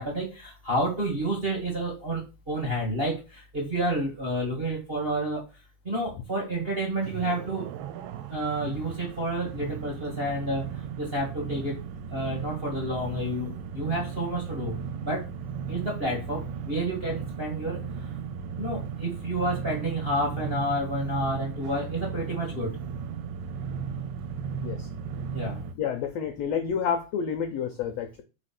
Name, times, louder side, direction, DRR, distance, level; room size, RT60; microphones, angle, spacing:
voice 1, 0.0-5.4 5.8-7.6 8.3-11.8 12.1-15.2 15.7-17.8 18.6-22.7 25.3-25.6, right 1 dB, 25° right, -1 dB, 1.5 m, -30 dB
sound 1, 7.0-25.7, right 6 dB, 85° right, 2.3 m, -36 dB
voice 2, 25.8-28.2, left 7 dB, 75° left, 6 dB, 1.5 m, -29 dB
4.9 x 4.3 x 5.9 m, 0.29 s
omnidirectional pair, 3.9 m